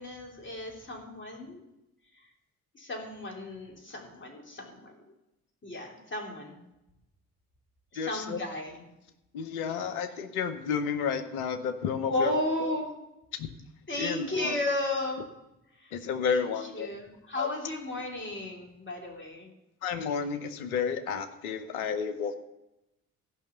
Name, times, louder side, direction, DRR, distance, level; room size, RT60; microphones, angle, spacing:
voice 1, 0.0-1.6 2.1-2.2 2.7-5.0 5.6-6.6 7.9-8.9 12.0-12.9 13.9-15.2 15.8-15.9 16.2-19.5, left 2 dB, 25° left, 0 dB, 3.1 m, -34 dB
voice 2, 8.0-8.4 9.3-12.3 13.4-13.5 13.9-14.6 15.9-16.9 17.4-17.5 19.8-22.4, left 6 dB, 70° left, 9 dB, 1.0 m, -31 dB
14.0 x 5.7 x 7.0 m, 0.91 s
figure-of-eight pair, 45°, 44 cm